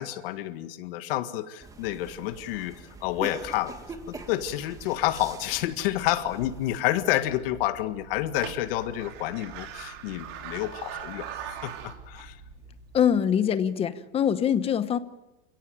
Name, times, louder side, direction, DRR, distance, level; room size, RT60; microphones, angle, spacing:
voice 1, 0.0-2.8 3.0-3.7 4.1-12.4, left 14 dB, 55° left, 10 dB, 1.8 m, -29 dB
sound 1, 1.6-6.8, right 3 dB, 10° right, 1.8 m, -43 dB
sound 2, 6.9-13.2, right 7 dB, 40° right, 3.5 m, -42 dB
voice 2, 12.9-15.0, left 8 dB, 15° left, 12 dB, 0.9 m, -23 dB
29.0 x 17.0 x 9.1 m, 1.0 s
supercardioid pair, 155°, 35 cm